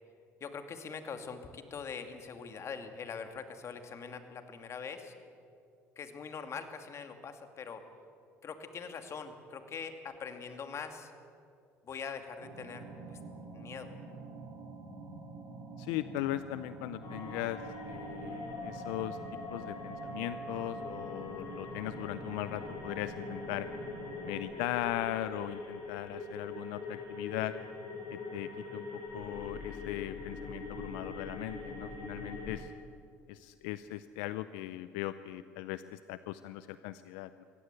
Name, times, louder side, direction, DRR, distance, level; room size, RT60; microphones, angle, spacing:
voice 1, 0.4-5.1 6.0-7.8 8.4-11.1 11.8-13.2 13.5-13.9, left 6 dB, 45° left, 7 dB, 2.5 m, -43 dB
sound 1, 12.4-24.5, right 3 dB, 80° right, 4.8 m, -47 dB
voice 2, 15.8-19.2 19.5-23.7 24.2-27.6 28.1-32.7 33.3-37.4, left 14 dB, 80° left, 13 dB, 0.5 m, -39 dB
sound 2, 17.0-32.6, left 3 dB, 60° left, 6.5 m, -43 dB
22.5 x 17.0 x 8.3 m, 2.4 s
supercardioid pair, 75°, 7 cm